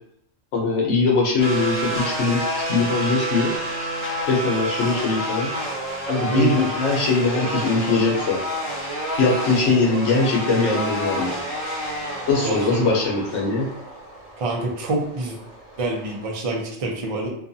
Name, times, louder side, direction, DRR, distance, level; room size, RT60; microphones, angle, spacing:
voice 1, 0.5-3.5 4.3-5.5 6.1-8.4 9.2-11.3 12.3-13.7, left 3 dB, 80° left, -2 dB, 1.0 m, -21 dB
sound 1, 1.4-16.3, equal, 70° right, 1.3 m, -29 dB
voice 2, 6.3-6.7 12.3-12.9 14.4-15.4 15.8-17.3, right 2 dB, 40° right, -1 dB, 0.5 m, -26 dB
2.6 x 2.3 x 2.6 m, 0.74 s
omnidirectional pair, 1.2 m